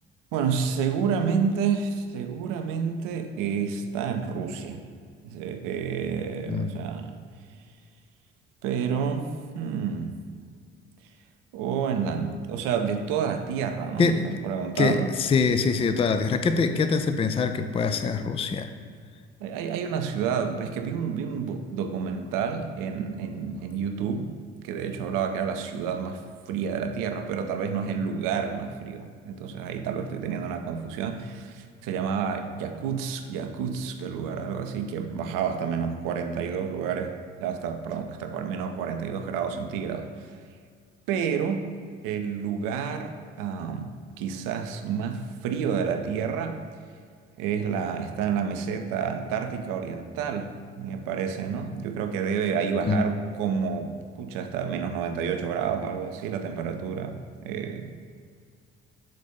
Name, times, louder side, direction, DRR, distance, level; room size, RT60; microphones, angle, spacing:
voice 1, 0.3-4.8 5.2-7.1 8.6-10.1 11.5-15.1 19.4-24.3 24.6-40.3 41.1-41.7 42.0-46.6 47.4-58.0, right 6 dB, 60° right, 5 dB, 0.7 m, -29 dB
voice 2, 14.0-14.4 14.8-18.7 52.9-53.0, left 4 dB, 15° left, 9 dB, 0.4 m, -24 dB
6.6 x 4.2 x 5.2 m, 2.1 s
figure-of-eight pair, 45°, 36 cm